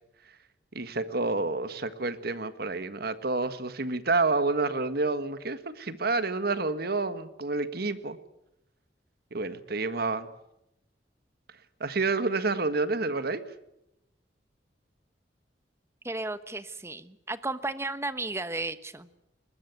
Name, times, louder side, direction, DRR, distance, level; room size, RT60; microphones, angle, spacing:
voice 1, 0.7-8.2 9.3-10.3 11.8-13.4, right 3 dB, 60° right, 12 dB, 1.6 m, -29 dB
voice 2, 16.0-19.1, right 2 dB, 15° right, 13 dB, 1.2 m, -34 dB
21.0 x 21.0 x 9.4 m, 0.85 s
head